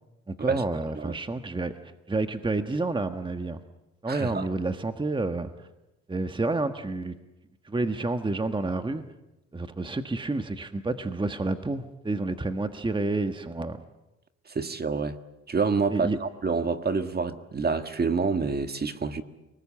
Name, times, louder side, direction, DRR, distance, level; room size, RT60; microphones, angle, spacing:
voice 1, 0.3-1.7 2.1-3.6 4.0-5.5 6.1-7.2 7.6-9.0 9.5-13.8 15.9-16.2, right 2 dB, 15° right, 1.5 m, -29 dB
voice 2, 4.1-4.5 14.5-15.2 15.5-19.2, right 4 dB, 30° right, 1.8 m, -28 dB
29.5 x 20.0 x 8.7 m
cardioid pair, 90°, 30 cm